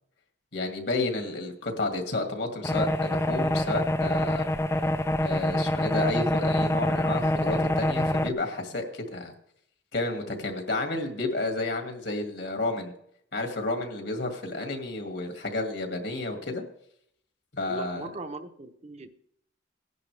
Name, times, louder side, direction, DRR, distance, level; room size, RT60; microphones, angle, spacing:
voice 1, 0.5-4.5 5.2-9.3 9.9-12.9 13.3-16.6 17.5-18.1, left 2 dB, 65° left, 4 dB, 2.2 m, -31 dB
sound 1, 2.6-8.3, left 1 dB, 15° left, 0.4 m, -26 dB
voice 2, 17.6-19.1, right 2 dB, 35° right, 8 dB, 0.9 m, -39 dB
17.5 x 10.5 x 3.4 m, 0.70 s
head